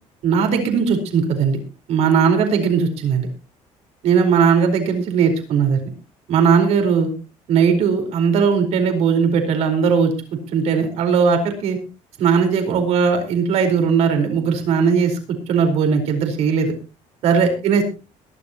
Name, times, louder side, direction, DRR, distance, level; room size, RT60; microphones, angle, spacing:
voice 1, 0.2-1.6 1.9-3.3 4.0-5.8 6.3-7.1 7.5-10.1 10.5-11.8 12.2-15.2 15.5-16.7 17.2-17.8, right 6 dB, 60° right, 5 dB, 4.5 m, -18 dB
22.0 x 11.5 x 3.0 m, 0.31 s
cardioid pair, 180°, 12 cm